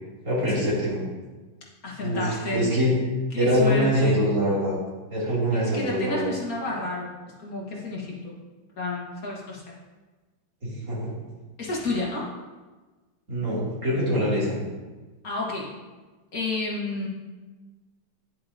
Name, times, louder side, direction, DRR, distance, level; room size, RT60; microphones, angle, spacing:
voice 1, 0.2-1.0 2.0-2.9 3.4-4.8 5.1-6.3 10.6-11.1 13.3-14.6, equal, 45° right, -8 dB, 3.2 m, -24 dB
voice 2, 1.8-2.7 3.3-4.2 5.5-7.1 7.4-8.4 8.8-9.6 11.6-12.3 15.2-15.7 16.3-17.1, left 2 dB, 55° left, -4 dB, 2.1 m, -30 dB
9.7 x 7.6 x 2.8 m, 1.2 s
omnidirectional pair, 1.9 m